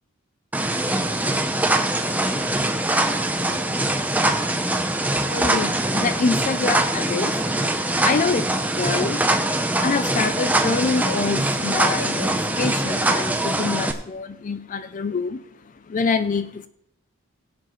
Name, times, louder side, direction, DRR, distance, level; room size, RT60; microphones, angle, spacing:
sound 1, 0.5-13.9, right 1 dB, 10° right, 0.6 m, -23 dB
voice 1, 5.2-7.4 8.0-9.2 9.8-15.4 15.7-16.7, left 4 dB, 40° left, 12 dB, 0.4 m, -26 dB
20.0 x 7.8 x 3.1 m, 0.75 s
head